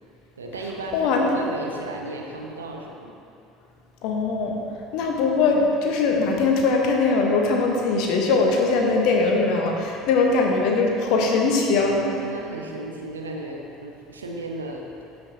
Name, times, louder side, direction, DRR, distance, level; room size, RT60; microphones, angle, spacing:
voice 1, 0.4-3.1 11.9-14.8, right 2 dB, 80° right, 1 dB, 0.7 m, -34 dB
voice 2, 0.9-1.3 4.0-4.5 4.9-12.0, left 3 dB, 55° left, 1 dB, 1.0 m, -21 dB
12.5 x 5.3 x 2.8 m, 2.6 s
figure-of-eight pair, 65°, 0 cm